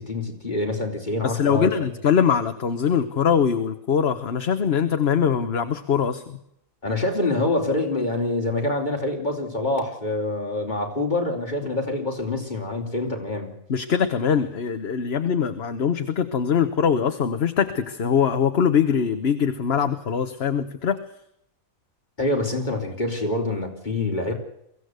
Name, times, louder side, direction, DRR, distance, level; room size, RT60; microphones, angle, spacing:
voice 1, 0.0-1.9 6.8-13.5 22.2-24.3, left 2 dB, 30° left, 1 dB, 4.2 m, -26 dB
voice 2, 1.2-6.4 13.7-21.0, left 7 dB, 50° left, 9 dB, 1.3 m, -22 dB
23.5 x 16.0 x 8.1 m, 0.78 s
omnidirectional pair, 1.5 m